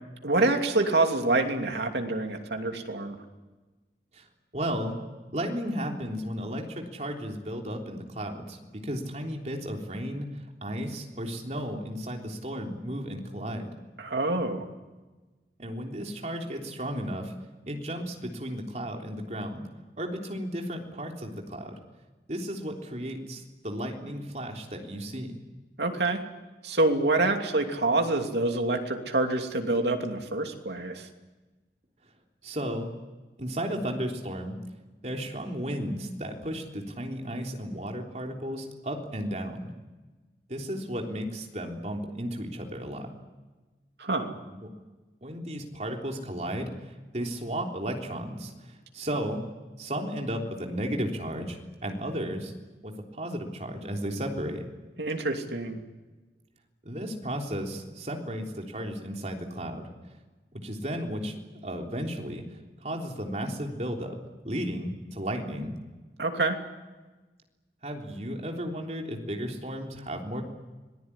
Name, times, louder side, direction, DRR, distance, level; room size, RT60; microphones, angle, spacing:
voice 1, 0.2-3.2 14.0-14.7 25.8-26.2 26.6-31.1 44.0-44.3 55.0-55.8 66.2-66.6, right 2 dB, 75° right, 4 dB, 2.8 m, -26 dB
voice 2, 4.5-5.0 5.3-8.6 8.8-10.3 10.6-13.7 15.6-17.3 17.7-19.7 20.0-21.8 22.3-25.4 32.4-32.9 33.4-34.6 35.0-39.7 40.5-43.1 44.5-44.7 45.2-46.7 47.1-49.4 49.8-52.5 52.8-54.6 56.8-59.9 60.5-62.4 62.8-64.2 64.4-65.8 67.8-70.4, equal, 40° right, 2 dB, 3.5 m, -34 dB
26.0 x 19.5 x 10.0 m, 1.2 s
head